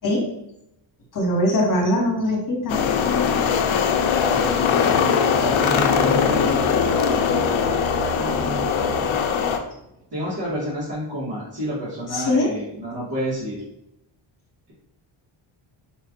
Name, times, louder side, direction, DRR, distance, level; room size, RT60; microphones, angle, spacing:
voice 1, 1.1-2.8 12.1-12.5, left 1 dB, 40° left, 0 dB, 1.4 m, -21 dB
sound 1, 2.7-9.6, left 7 dB, 70° left, 0.6 m, -21 dB
voice 2, 4.3-6.7 10.1-13.6, equal, 50° right, -10 dB, 1.6 m, -29 dB
sound 2, 5.1-9.9, right 2 dB, 20° right, 0.6 m, -31 dB
4.5 x 2.5 x 3.7 m, 0.83 s
cardioid pair, 135°, 48 cm